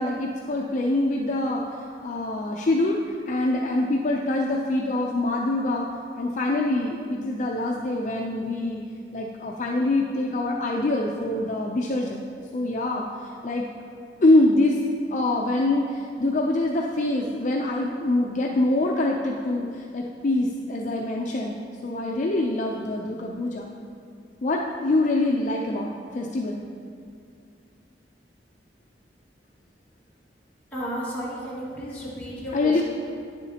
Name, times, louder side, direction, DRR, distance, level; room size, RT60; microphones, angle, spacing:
voice 1, 0.0-1.6 2.0-5.9 6.2-8.8 9.1-12.2 12.5-13.7 14.2-14.8 15.1-23.7 24.4-26.6 32.5-32.8, left 2 dB, 45° left, -1 dB, 0.4 m, -25 dB
voice 2, 30.7-32.8, equal, 10° left, -9 dB, 1.9 m, -33 dB
9.8 x 7.0 x 2.8 m, 2.3 s
head